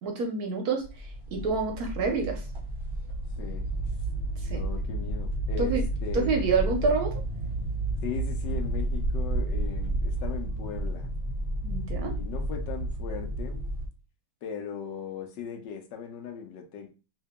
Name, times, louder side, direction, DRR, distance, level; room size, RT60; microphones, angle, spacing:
voice 1, 0.0-2.4 4.4-4.6 5.6-5.8 6.1-7.1 11.6-12.1, right 4 dB, 65° right, 1.0 m, -28 dB
sound 1, 0.8-13.9, right 1 dB, 35° right, 0.9 m, -31 dB
voice 2, 3.4-3.7 4.5-6.5 8.0-11.1 12.0-13.6 14.4-16.9, left 7 dB, 75° left, 1.2 m, -39 dB
2.9 x 2.7 x 3.5 m
omnidirectional pair, 2.0 m